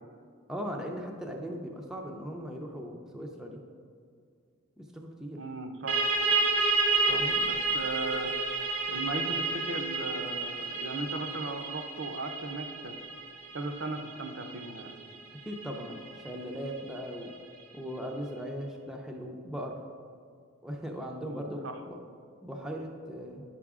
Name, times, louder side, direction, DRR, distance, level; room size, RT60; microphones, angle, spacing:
voice 1, 0.5-3.6 4.8-5.4 7.1-7.4 15.5-17.3 17.7-19.8 20.6-22.0 22.4-23.4, equal, 5° right, 0 dB, 0.5 m, -38 dB
voice 2, 5.3-6.0 7.1-8.3 8.9-12.9 13.5-14.9 21.2-21.8, right 2 dB, 60° right, 5 dB, 0.6 m, -37 dB
sound 1, 5.9-17.2, right 3 dB, 85° right, 1.1 m, -31 dB
9.0 x 6.0 x 3.6 m, 2.3 s
head